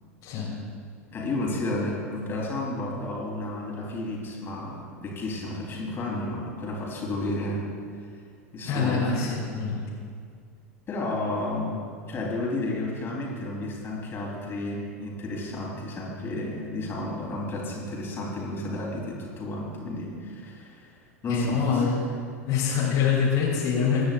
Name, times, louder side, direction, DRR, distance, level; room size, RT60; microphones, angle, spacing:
voice 1, 0.2-0.5 8.7-9.8 21.3-22.0 22.4-24.0, left 6 dB, 45° left, -6 dB, 3.1 m, -25 dB
voice 2, 1.1-7.6 8.5-9.2 10.9-21.0 21.2-21.8, left 1 dB, 30° left, -3 dB, 3.7 m, -32 dB
23.0 x 10.0 x 2.5 m, 2.2 s
figure-of-eight pair, 85°, 8 cm